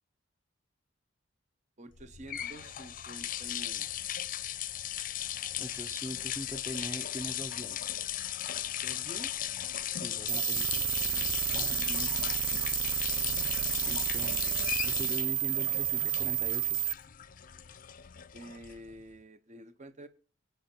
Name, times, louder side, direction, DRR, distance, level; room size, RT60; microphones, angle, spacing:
voice 1, 1.8-3.9 8.8-9.3 11.0-11.9 18.3-20.1, right 1 dB, 35° right, 0.9 m, -48 dB
sound 1, 2.0-19.0, left 11 dB, 45° left, 0.6 m, -37 dB
voice 2, 5.6-7.8 9.9-10.9 11.4-12.1 13.8-16.8, right 1 dB, 15° right, 0.7 m, -42 dB
sound 2, 10.3-16.9, right 13 dB, 80° right, 0.6 m, -31 dB
22.5 x 9.4 x 4.5 m
head